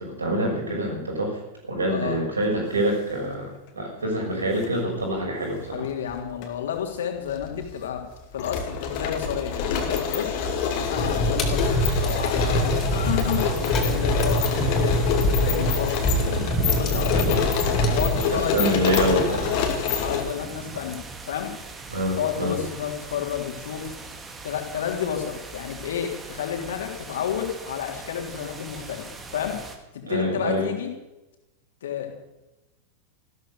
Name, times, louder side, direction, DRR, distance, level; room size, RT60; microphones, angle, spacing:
voice 1, 0.0-1.4 1.7-5.9 16.9-17.4 18.3-19.5 21.9-22.6 30.1-30.7, right 1 dB, 75° right, 0 dB, 6.3 m, -26 dB
voice 2, 1.9-2.2 5.7-8.0 8.3-10.4 10.7-11.6 12.0-14.9 15.4-17.4 17.9-18.8 20.0-21.5 22.2-23.9 24.4-29.6 29.9-30.9 31.8-32.2, left 9 dB, 60° left, 2 dB, 3.4 m, -31 dB
sound 1, 4.4-4.7 5.7-6.5 6.7-6.8 7.3-20.2, left 7 dB, 45° left, 2.6 m, -27 dB
sound 2, 11.0-18.2, right 1 dB, 30° left, 3.4 m, -25 dB
sound 3, 11.6-29.8, right 3 dB, 15° right, 2.4 m, -37 dB
15.0 x 13.0 x 6.6 m, 0.98 s
figure-of-eight pair, 90°, 0 cm